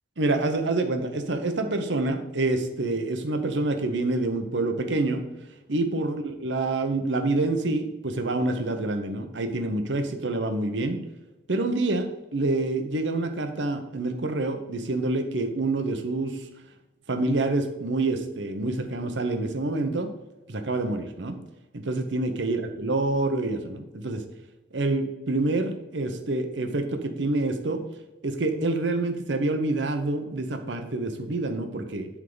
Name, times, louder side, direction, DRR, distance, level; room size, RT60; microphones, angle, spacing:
voice 1, 0.2-5.2 5.7-11.0 11.5-16.4 17.1-20.1 20.5-21.4 21.7-24.2 24.7-27.8 28.2-32.1, right 2 dB, 80° right, 7 dB, 0.9 m, -27 dB
11.0 x 3.6 x 4.0 m, 1.0 s
head